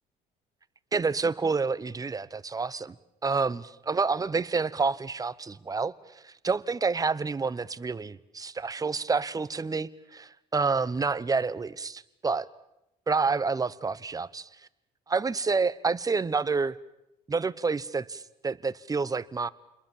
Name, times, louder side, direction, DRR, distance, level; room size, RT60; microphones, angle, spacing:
voice 1, 0.9-2.9 3.2-12.5 13.1-14.5 15.1-16.8 17.3-19.5, right 4 dB, 20° right, 15 dB, 1.0 m, -28 dB
29.0 x 21.5 x 7.4 m, 0.87 s
cardioid pair, 110°, 17 cm